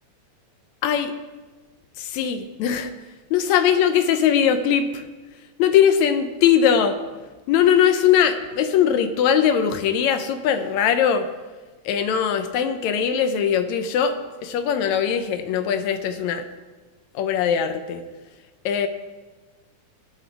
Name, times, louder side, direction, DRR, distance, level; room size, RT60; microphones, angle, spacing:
voice 1, 0.8-1.1 2.0-2.9 3.3-5.0 5.6-7.0 7.5-11.3 11.9-14.2 14.4-16.4 17.2-18.0 18.7-18.9, left 8 dB, 75° left, 9 dB, 2.0 m, -20 dB
18.0 x 6.1 x 4.6 m, 1.3 s
omnidirectional pair, 3.4 m